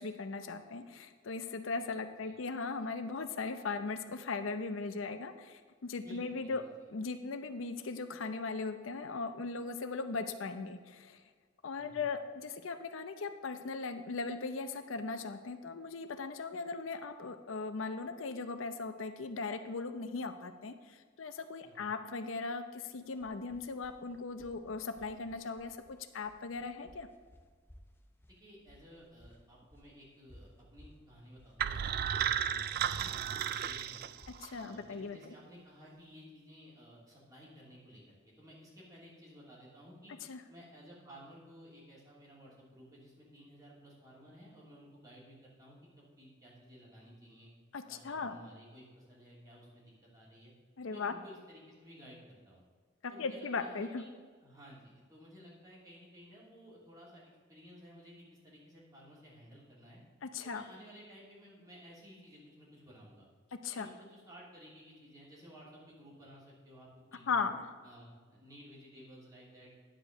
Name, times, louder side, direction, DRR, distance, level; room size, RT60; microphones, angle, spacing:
voice 1, 0.0-6.6 6.9-11.2 11.6-27.1 34.4-35.2 40.3-40.4 47.7-48.4 50.8-51.1 53.0-54.0 60.2-60.6 63.6-63.9 67.3-67.7, left 4 dB, 90° left, 9 dB, 0.6 m, -38 dB
voice 2, 6.0-6.7 11.8-12.0 21.6-21.9 28.4-34.1 34.5-40.1 40.5-47.5 47.9-50.5 50.8-52.6 53.1-54.1 54.4-60.0 60.4-63.3 63.8-67.4 67.8-69.7, equal, 20° right, -6 dB, 3.0 m, -55 dB
sound 1, 22.9-36.1, equal, 10° left, 0.6 m, -61 dB
sound 2, 31.6-34.6, right 9 dB, 50° right, 0.3 m, -34 dB
10.0 x 5.0 x 6.6 m, 1.5 s
head